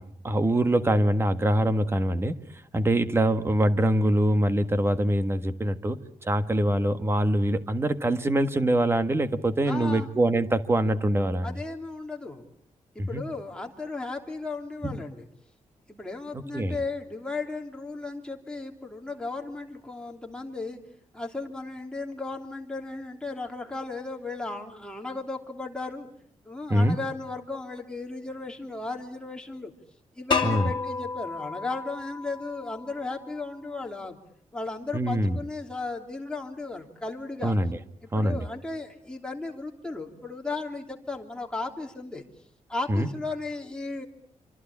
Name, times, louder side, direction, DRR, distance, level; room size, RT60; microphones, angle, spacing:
voice 1, 0.0-2.3 2.7-11.5 13.0-13.2 14.8-15.0 16.3-16.8 26.7-27.0 30.4-30.7 34.9-35.4 37.4-37.8 38.1-38.4 42.9-43.1, right 1 dB, 20° right, 10 dB, 1.5 m, -24 dB
voice 2, 9.7-10.1 11.4-12.4 12.9-15.3 15.9-20.8 21.1-26.1 26.4-29.7 30.1-34.2 34.5-37.6 38.1-42.2 42.7-44.0, left 3 dB, 5° left, 1 dB, 3.1 m, -35 dB
sound 1, 30.3-33.2, left 5 dB, 40° left, 2.8 m, -31 dB
26.5 x 26.0 x 8.6 m, 0.67 s
wide cardioid pair, 170°, 13 cm